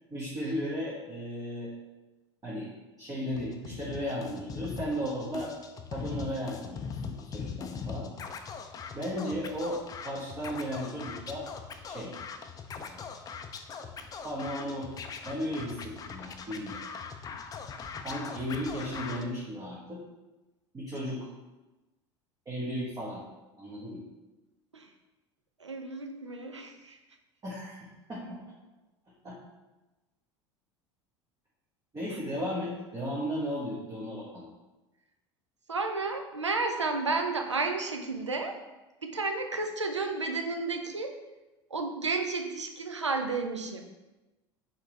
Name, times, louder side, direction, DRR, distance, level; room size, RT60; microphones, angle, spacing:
voice 1, 0.1-1.7 2.4-2.7 3.0-5.5 5.9-8.1 8.9-11.4 11.8-12.1 12.8-13.1 13.8-13.9 14.2-14.9 15.2-16.8 18.0-20.0 20.7-21.3 22.4-23.2 23.6-24.0 27.4-28.4 29.2-29.3 31.9-34.5, equal, 25° right, -7 dB, 1.2 m, -35 dB
Scratching (performance technique), 3.3-19.2, left 6 dB, 25° left, 0.4 m, -41 dB
voice 2, 25.6-27.0 35.7-38.6 39.0-41.1 41.7-43.9, right 3 dB, 90° right, 5 dB, 0.5 m, -32 dB
4.3 x 3.9 x 3.2 m, 1.1 s
figure-of-eight pair, 75°, 15 cm